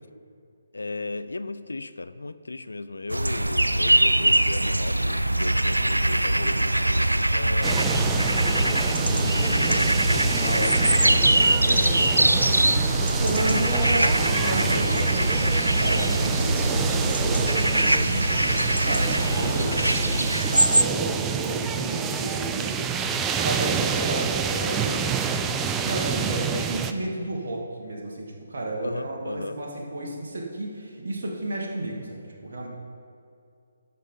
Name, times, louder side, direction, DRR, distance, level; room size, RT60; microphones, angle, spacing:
voice 1, 0.7-7.9 8.6-12.5 28.8-29.6, left 3 dB, 70° left, 13 dB, 0.3 m, -35 dB
sound 1, 3.1-20.8, right 1 dB, 85° right, 0.3 m, -22 dB
sound 2, 7.6-26.9, right 6 dB, 15° right, 0.4 m, -28 dB
voice 2, 13.2-15.5 15.8-22.8 23.4-25.0 25.7-32.7, right 1 dB, 55° right, -2 dB, 1.5 m, -32 dB
13.0 x 5.4 x 3.8 m, 2.4 s
figure-of-eight pair, 140°, 0 cm